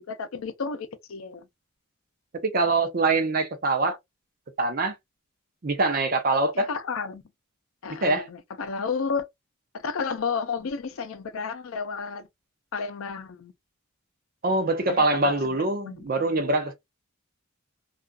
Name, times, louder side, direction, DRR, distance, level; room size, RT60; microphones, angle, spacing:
voice 1, 0.0-1.5 6.6-7.2 7.8-9.3 9.7-12.3 12.7-13.5 14.9-15.3 15.8-16.0 16.4-16.5, left 5 dB, 70° left, 0.5 m, -32 dB
voice 2, 2.4-4.0 4.6-4.9 5.6-6.7 8.0-8.3 14.4-16.7, right 2 dB, 40° right, 0.5 m, -24 dB
2.3 x 2.3 x 2.3 m
head